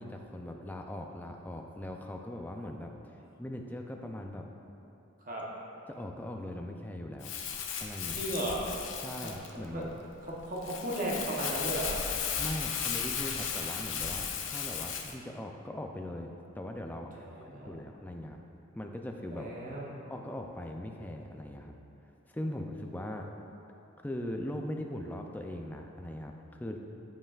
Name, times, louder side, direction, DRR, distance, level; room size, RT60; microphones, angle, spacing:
voice 1, 0.0-2.9 3.4-4.5 5.9-7.3 7.8-8.3 9.0-9.9 12.4-18.4 18.7-19.5 20.1-21.7 22.3-23.3 24.0-26.8, left 1 dB, 10° left, 2 dB, 0.4 m, -40 dB
Crumpling crinkling, 7.2-15.1, left 7 dB, 60° left, 0.7 m, -35 dB
voice 2, 8.1-8.6 9.2-9.3 9.7-9.8 10.2-12.0 17.2-17.7 19.3-20.0, right 1 dB, 40° right, -4 dB, 1.0 m, -35 dB
14.5 x 5.4 x 2.4 m, 2.8 s
head